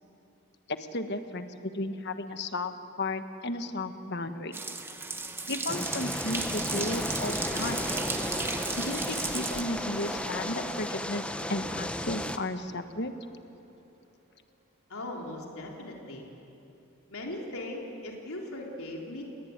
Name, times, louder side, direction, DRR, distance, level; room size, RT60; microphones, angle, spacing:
voice 1, 0.7-2.7 3.0-4.6 5.5-7.9 8.8-13.1, left 2 dB, 50° left, 8 dB, 1.5 m, -34 dB
sound 1, 4.5-9.6, right 3 dB, 10° right, 1.2 m, -35 dB
sound 2, 4.9-12.9, right 1 dB, 35° right, 3.7 m, -44 dB
sound 3, 5.7-12.4, left 1 dB, 5° left, 0.8 m, -34 dB
voice 2, 14.9-16.2 17.1-19.2, left 1 dB, 75° left, -1 dB, 3.7 m, -39 dB
30.0 x 19.5 x 9.6 m, 2.9 s
head